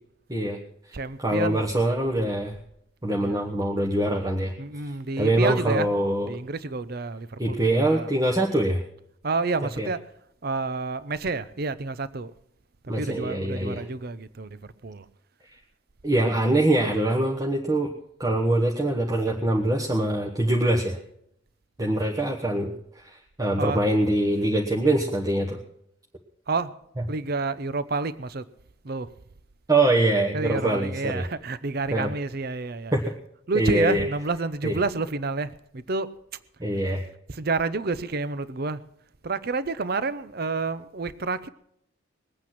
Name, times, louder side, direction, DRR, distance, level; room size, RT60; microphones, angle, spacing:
voice 1, 0.3-0.6 0.9-2.5 3.0-4.9 5.2-6.3 7.4-8.8 9.8-9.9 12.9-13.8 16.0-17.9 18.2-21.0 21.8-25.6 29.7-31.2 31.9-32.1 32.9-33.0 33.5-34.1 34.6-34.8 36.6-37.0, right 1 dB, 20° right, 1.2 m, -24 dB
voice 2, 0.9-1.6 3.2-3.4 4.6-5.9 6.3-8.1 9.2-10.0 10.4-12.3 13.0-15.1 23.6-23.8 26.5-26.7 27.1-28.5 28.8-29.1 30.3-32.9 33.5-36.1 37.3-38.8 39.2-41.5, right 3 dB, 50° right, 0.7 m, -29 dB
21.0 x 8.8 x 6.0 m
head